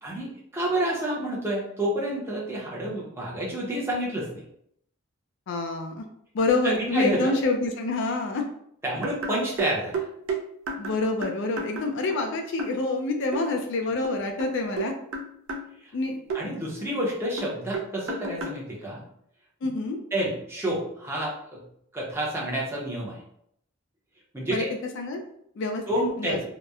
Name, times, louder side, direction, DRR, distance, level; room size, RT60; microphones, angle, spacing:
voice 1, 0.0-4.4 6.6-7.3 8.8-10.1 15.8-15.9 16.3-19.0 20.1-21.6 21.9-23.2 24.3-24.7 25.9-26.4, right 1 dB, 10° right, -4 dB, 0.6 m, -29 dB
voice 2, 5.5-6.1 6.3-8.4 10.8-14.9 15.9-16.2 19.6-20.0 24.5-24.7 24.9-25.2 25.6-25.8 26.2-26.4, left 3 dB, 60° left, 4 dB, 0.3 m, -27 dB
sound 1, 9.0-12.3 12.6-12.8 13.3-13.4 14.0-15.7 16.3-16.4 17.4-18.6, right 3 dB, 75° right, 0.4 m, -32 dB
2.8 x 2.0 x 2.3 m, 0.71 s
head